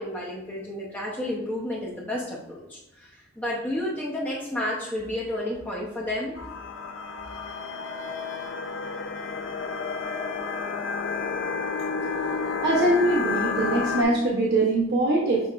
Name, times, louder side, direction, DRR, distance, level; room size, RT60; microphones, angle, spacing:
voice 1, 0.0-6.4, left 1 dB, 10° left, -5 dB, 0.6 m, -31 dB
sound 1, 6.4-14.0, left 5 dB, 70° left, 0.5 m, -30 dB
voice 2, 12.6-15.5, right 2 dB, 60° right, -4 dB, 0.8 m, -22 dB
6.3 x 3.4 x 2.4 m, 0.94 s
head